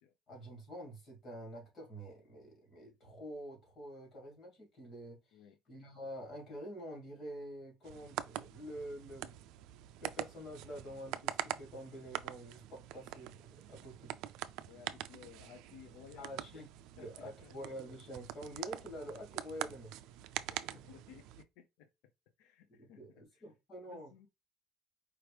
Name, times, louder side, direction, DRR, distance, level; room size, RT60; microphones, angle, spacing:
voice 1, 0.3-5.4 5.7-9.3 10.0-14.1 16.2-16.7 16.9-19.9 20.5-20.8 22.7-24.1, equal, 35° left, 2.6 m, -47 dB
sound 1, 7.8-21.4, right 13 dB, 70° right, 0.4 m, -44 dB
voice 2, 14.7-16.4 17.0-17.5 20.5-20.6 20.9-21.9 22.4-23.4 23.9-24.3, left 8 dB, 85° left, 0.7 m, -57 dB
4.8 x 3.0 x 3.4 m
cardioid pair, 150°, 0 cm